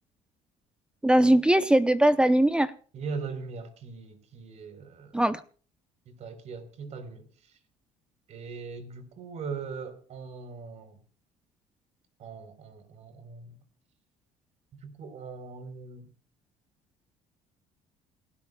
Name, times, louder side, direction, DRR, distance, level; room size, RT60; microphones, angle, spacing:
voice 1, 1.0-2.7 5.1-5.4, right 1 dB, 5° right, 0.7 m, -20 dB
voice 2, 2.9-5.2 6.1-7.6 8.3-11.0 12.2-13.6 14.8-16.1, right 5 dB, 50° right, 4.1 m, -40 dB
28.5 x 13.0 x 2.3 m
cardioid pair, 120°, 14 cm